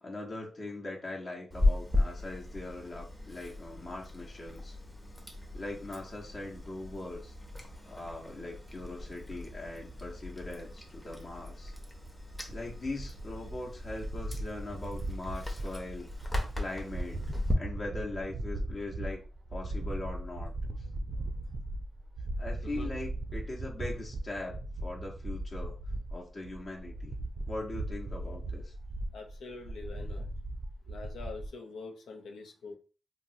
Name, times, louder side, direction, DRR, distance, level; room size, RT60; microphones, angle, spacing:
voice 1, 0.0-4.8 5.5-7.3 7.9-11.7 12.5-16.1 16.5-17.2 17.6-19.2 19.5-20.5 22.4-25.8 26.1-27.1 27.5-28.7, left 2 dB, 45° left, -1 dB, 0.9 m, -40 dB
Chewing mastication, 1.5-17.5, left 2 dB, 10° left, 0.7 m, -37 dB
sound 1, 11.6-31.5, right 1 dB, 40° right, 0.5 m, -38 dB
voice 2, 29.1-30.3 30.9-32.8, left 4 dB, 90° left, 2 dB, 0.6 m, -44 dB
3.5 x 2.1 x 2.7 m, 0.36 s
cardioid pair, 80°, 0 cm